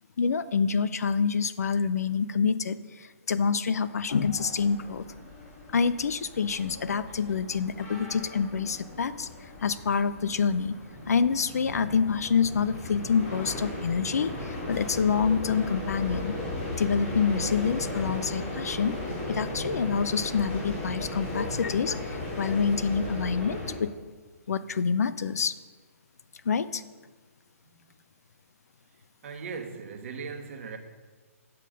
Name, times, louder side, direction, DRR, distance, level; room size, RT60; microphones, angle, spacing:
voice 1, 0.2-5.1 5.7-9.3 9.6-10.7 11.1-16.3 16.7-18.9 19.3-23.9 24.5-25.6 26.4-26.8, left 6 dB, 80° left, 0.5 m, -27 dB
sound 1, 4.1-23.7, left 1 dB, 35° left, 2.8 m, -36 dB
voice 2, 29.2-30.8, right 5 dB, 55° right, 1.2 m, -38 dB
9.2 x 5.7 x 5.1 m
hypercardioid pair, 135°, 8 cm